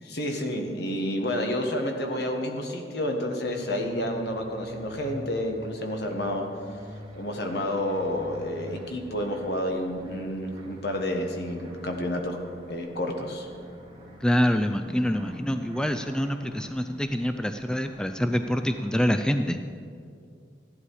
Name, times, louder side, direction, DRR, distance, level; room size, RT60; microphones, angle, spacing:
voice 1, 0.0-6.5 7.2-12.4 12.7-13.5, left 1 dB, 65° left, 3 dB, 1.5 m, -30 dB
sound 1, 3.4-19.4, equal, 25° right, 2.2 m, -46 dB
voice 2, 14.2-19.6, equal, 5° left, 7 dB, 0.3 m, -26 dB
14.5 x 11.0 x 4.8 m, 2.3 s
head